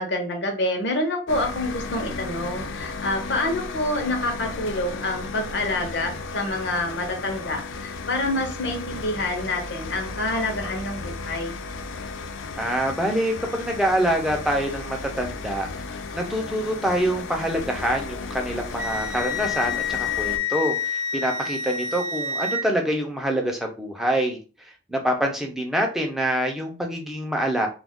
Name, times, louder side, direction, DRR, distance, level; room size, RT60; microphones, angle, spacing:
voice 1, 0.0-11.6, left 1 dB, 65° left, 3 dB, 0.8 m, -27 dB
sound 1, 1.3-20.4, left 3 dB, 90° left, 0.4 m, -35 dB
voice 2, 12.6-15.7 16.1-24.4 24.9-27.7, right 1 dB, ahead, 1 dB, 0.5 m, -25 dB
Wind instrument woodwind instrument, 18.8-22.6, left 5 dB, 75° right, 0.6 m, -28 dB
2.4 x 2.3 x 3.5 m, 0.33 s
head